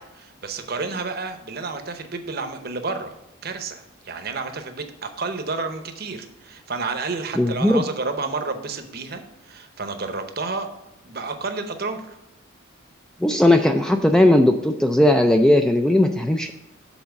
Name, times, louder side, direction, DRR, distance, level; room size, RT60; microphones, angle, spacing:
voice 1, 0.0-3.2 3.4-10.7 11.0-12.2, right 3 dB, 45° right, 7 dB, 0.8 m, -30 dB
voice 2, 7.4-7.8 13.2-16.5, left 1 dB, 5° left, 5 dB, 0.3 m, -17 dB
7.2 x 4.2 x 6.5 m, 0.91 s
head